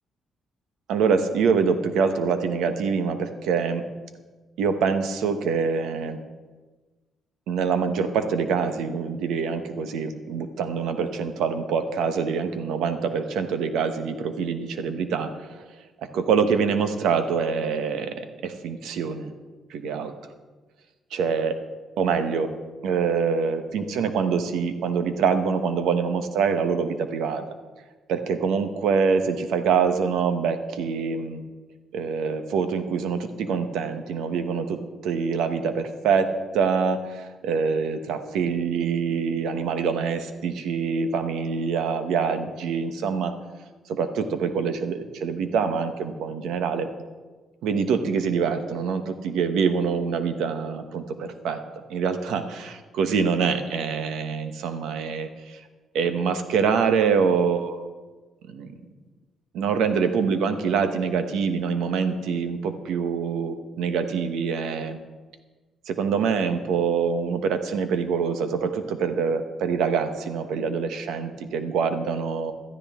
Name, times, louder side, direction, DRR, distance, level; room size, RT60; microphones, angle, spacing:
voice 1, 0.9-3.8 4.6-6.2 7.5-15.6 16.1-19.3 19.7-20.1 21.1-21.6 22.0-22.5 22.8-27.4 28.1-31.4 31.9-43.3 43.9-46.9 47.6-51.6 51.9-55.6 55.9-57.9 58.5-58.7 59.5-65.0 65.9-72.5, right 6 dB, 85° right, 8 dB, 1.1 m, -25 dB
15.5 x 12.5 x 3.7 m, 1.3 s
cardioid pair, 90°, 0 cm